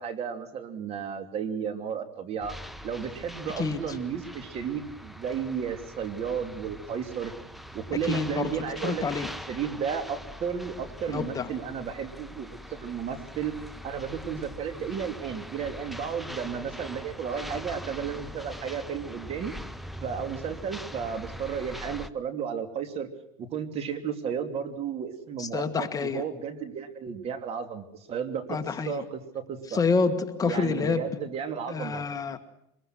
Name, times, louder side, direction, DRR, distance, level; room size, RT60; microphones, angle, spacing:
voice 1, 0.0-2.6 2.8-7.3 7.7-9.0 9.5-13.5 13.8-19.5 20.0-23.1 23.4-29.8 30.4-32.0, right 7 dB, 45° right, 8 dB, 3.0 m, -33 dB
sound 1, 2.4-22.1, equal, ahead, 0.9 m, -42 dB
voice 2, 3.6-4.0 8.0-9.3 11.1-11.5 25.4-26.2 28.5-29.0 29.7-31.2 31.7-32.4, left 4 dB, 25° left, 8 dB, 1.6 m, -28 dB
23.5 x 21.5 x 6.2 m, 0.79 s
supercardioid pair, 125°, 14 cm